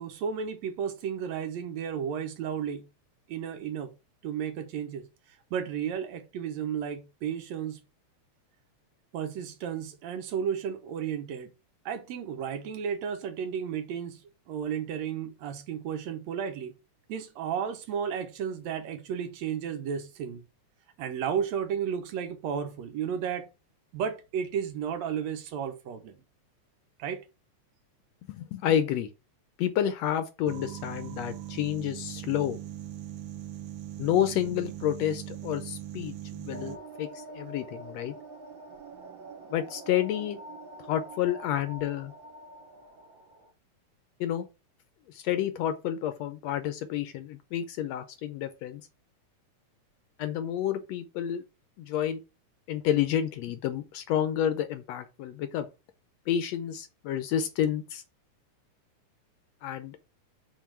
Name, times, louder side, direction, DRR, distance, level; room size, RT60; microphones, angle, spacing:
voice 1, 0.0-2.9 3.3-3.9 4.2-5.1 5.5-7.8 9.1-11.5 11.9-14.2 14.5-16.7 17.1-20.5 21.0-23.5 23.9-26.2 27.0-27.2, right 8 dB, 70° right, 2.0 m, -33 dB
voice 2, 28.3-29.1 29.6-32.6 34.0-38.1 39.5-40.4 40.8-42.1 44.2-44.5 45.1-48.8 50.2-51.4 51.8-52.2 52.7-55.7 56.3-58.0 59.6-60.0, left 10 dB, 75° left, 1.6 m, -29 dB
sound 1, 30.5-36.8, right 13 dB, 85° right, 1.3 m, -40 dB
sound 2, 36.5-43.5, right 2 dB, 55° right, 1.5 m, -46 dB
5.7 x 4.6 x 6.0 m
omnidirectional pair, 3.4 m